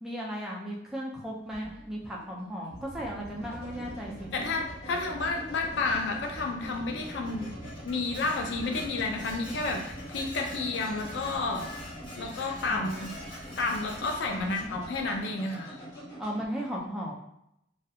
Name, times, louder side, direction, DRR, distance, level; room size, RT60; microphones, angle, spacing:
voice 1, 0.0-4.5 12.7-12.9 14.4-14.7 16.2-17.1, equal, 5° right, -4 dB, 0.4 m, -36 dB
sound 1, 1.1-16.5, equal, 50° left, 1.1 m, -45 dB
sound 2, 2.7-15.2, right 1 dB, 60° right, 0.6 m, -46 dB
voice 2, 4.3-7.5 7.8-11.7 12.2-13.1 13.6-15.8, left 3 dB, 85° left, 2 dB, 0.4 m, -31 dB
Dishes pots and pans, 7.0-14.7, left 1 dB, 30° left, 0.8 m, -47 dB
2.4 x 2.1 x 2.7 m, 0.79 s
head